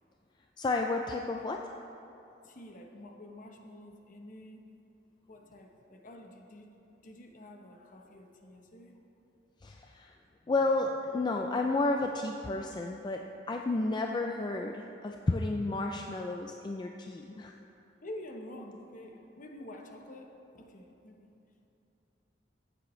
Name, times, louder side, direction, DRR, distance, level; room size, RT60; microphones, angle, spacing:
voice 1, 0.6-1.7 9.6-10.2 10.5-17.6, left 2 dB, 25° left, 3 dB, 0.3 m, -32 dB
voice 2, 2.4-4.7 5.3-6.7 7.0-9.0 18.0-21.3, left 1 dB, 45° left, 3 dB, 0.9 m, -48 dB
15.0 x 7.6 x 3.1 m, 2.9 s
head